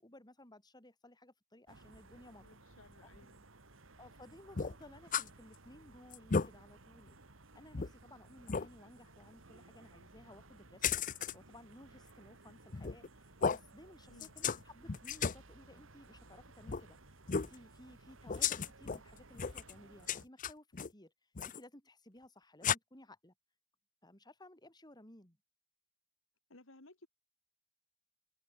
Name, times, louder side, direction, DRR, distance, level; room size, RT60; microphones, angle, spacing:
voice 1, 0.0-2.4 4.0-7.2 7.5-10.9 11.3-17.0 17.3-21.1 21.4-23.3 24.0-25.4, left 1 dB, 20° left, 6.8 m, -57 dB
sound 1, 1.7-20.3, right 2 dB, 75° right, 2.7 m, -59 dB
voice 2, 2.4-3.5 14.0-14.3 26.5-27.1, left 2 dB, 75° left, 2.8 m, -59 dB
sound 2, 4.6-5.3 5.7-5.8 6.1-6.5 7.1-7.2 7.7-7.9 8.5-8.7 10.8-11.3 12.7-13.1 13.4-13.6 14.2-14.6 14.9-15.4 16.7-16.8 17.3-17.6 18.3-19.0 19.3-19.7 20.1-20.9 21.4-21.6 22.6-22.8, left 6 dB, 40° left, 0.6 m, -34 dB
open air
head